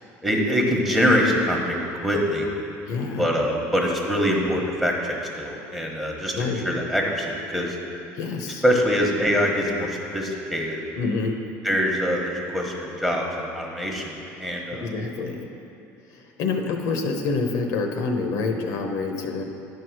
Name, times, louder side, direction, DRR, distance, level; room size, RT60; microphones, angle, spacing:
voice 1, 0.2-1.8 2.0-2.5 3.2-7.8 8.6-10.8 11.6-14.9, equal, 5° right, -1 dB, 1.3 m, -24 dB
voice 2, 2.9-3.3 6.4-6.7 8.2-8.6 11.0-11.4 14.7-15.5 16.4-19.4, left 4 dB, 65° left, 4 dB, 0.9 m, -27 dB
10.0 x 4.7 x 6.2 m, 2.7 s
cardioid pair, 125°, 6 cm